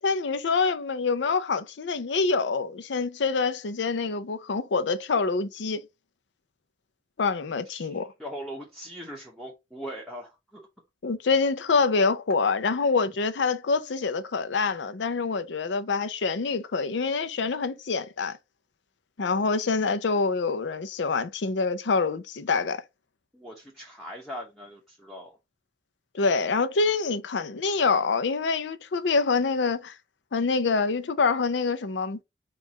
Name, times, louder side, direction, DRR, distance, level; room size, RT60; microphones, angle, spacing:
voice 1, 0.0-5.8 7.2-8.1 11.0-18.4 19.2-22.8 26.1-29.9 30.3-32.2, left 4 dB, 85° left, 0.5 m, -26 dB
voice 2, 7.6-10.7 23.3-25.4, equal, ahead, 0.8 m, -40 dB
4.5 x 2.4 x 4.1 m
head